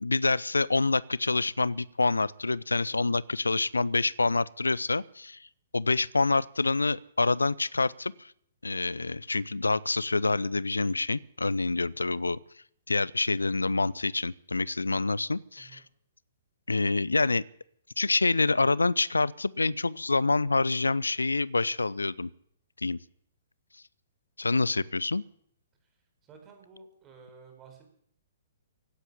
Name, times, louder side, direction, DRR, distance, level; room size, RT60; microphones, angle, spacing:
voice 1, 0.0-5.5 5.7-8.3 8.6-12.4 12.9-15.8 16.7-17.4 18.0-22.3 22.8-23.0 24.4-25.2, left 3 dB, 75° left, 22 dB, 0.5 m, -27 dB
voice 2, 15.6-15.9 24.5-24.9 26.2-27.9, right 5 dB, 20° right, 5 dB, 4.5 m, -53 dB
16.5 x 8.2 x 9.9 m, 0.68 s
figure-of-eight pair, 115°, 0 cm